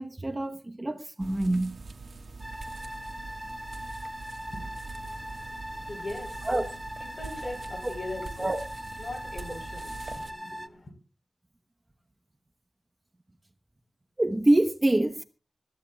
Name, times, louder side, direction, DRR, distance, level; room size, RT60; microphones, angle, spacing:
voice 1, 0.0-1.8 6.4-6.6 8.4-8.6 14.2-15.2, right 1 dB, 25° right, 1.0 m, -25 dB
sound 1, 1.2-10.3, right 3 dB, 80° right, 1.5 m, -43 dB
sound 2, 2.4-10.7, equal, ahead, 0.8 m, -40 dB
voice 2, 4.5-6.5 7.0-8.5 9.0-10.9, left 2 dB, 60° left, 4.3 m, -41 dB
24.5 x 14.5 x 2.3 m
wide cardioid pair, 105°, 0 cm